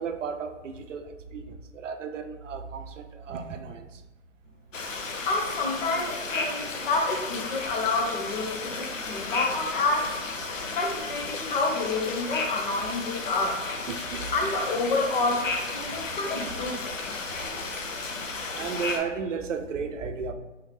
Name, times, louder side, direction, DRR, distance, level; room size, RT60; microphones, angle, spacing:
voice 1, 0.0-3.9 13.9-14.2 16.2-16.5 17.4-17.5 18.5-20.3, right 6 dB, 75° right, 7 dB, 0.5 m, -34 dB
sound 1, 4.7-19.0, left 3 dB, 90° left, 0.7 m, -34 dB
voice 2, 5.2-10.1 10.7-13.6 14.3-16.8, left 3 dB, 45° left, 1 dB, 0.8 m, -28 dB
3.6 x 3.2 x 3.2 m, 1.1 s
figure-of-eight pair, 135°, 38 cm